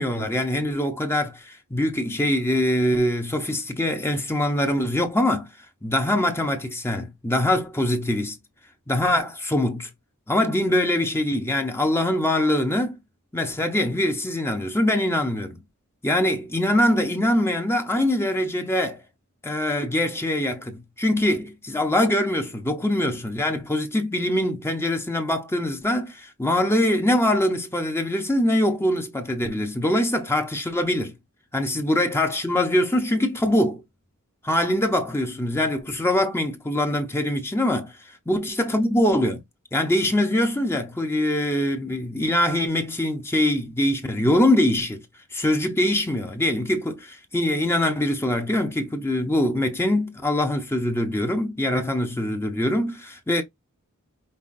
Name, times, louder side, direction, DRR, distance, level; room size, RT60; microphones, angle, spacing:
voice 1, 0.0-5.5 5.8-8.4 8.9-9.9 10.3-13.0 13.3-15.6 16.0-19.0 19.4-31.1 31.5-33.8 34.4-37.9 38.3-39.4 39.7-45.0 45.3-53.4, left 1 dB, 10° left, 0.7 m, -23 dB
5.5 x 2.8 x 2.5 m
head